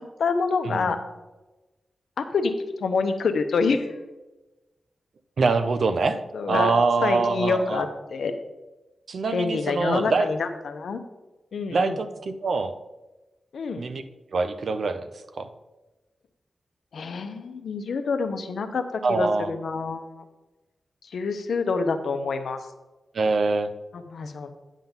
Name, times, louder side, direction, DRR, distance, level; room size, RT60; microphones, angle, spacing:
voice 1, 0.2-1.0 2.3-2.5 2.8-3.9 6.3-6.7 7.0-8.3 9.3-11.0 11.5-12.0 13.5-13.8 16.9-18.8 19.1-20.2 21.1-22.6 24.1-24.5, left 4 dB, 75° left, 8 dB, 0.8 m, -26 dB
voice 2, 5.4-6.2 6.5-7.9 9.1-10.3 11.7-12.7 13.8-14.0 14.3-15.1 15.4-15.5 19.0-19.5 23.1-23.7, right 4 dB, 60° right, 9 dB, 0.6 m, -24 dB
9.1 x 3.9 x 7.1 m, 1.1 s
wide cardioid pair, 140°, 0 cm